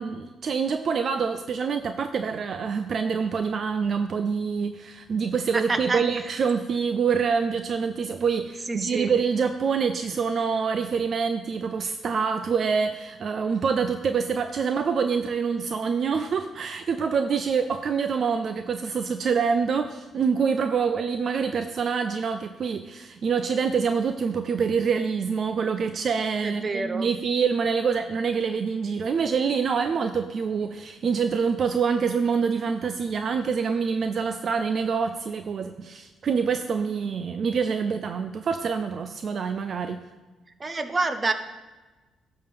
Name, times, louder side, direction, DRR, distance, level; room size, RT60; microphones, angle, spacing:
voice 1, 0.0-40.0, right 6 dB, 55° right, 8 dB, 0.5 m, -26 dB
voice 2, 5.7-6.0 8.7-9.1 26.4-27.1 40.6-41.3, right 3 dB, 30° right, 9 dB, 0.9 m, -27 dB
11.5 x 3.8 x 6.8 m, 1.2 s
cardioid pair, 90°, 0 cm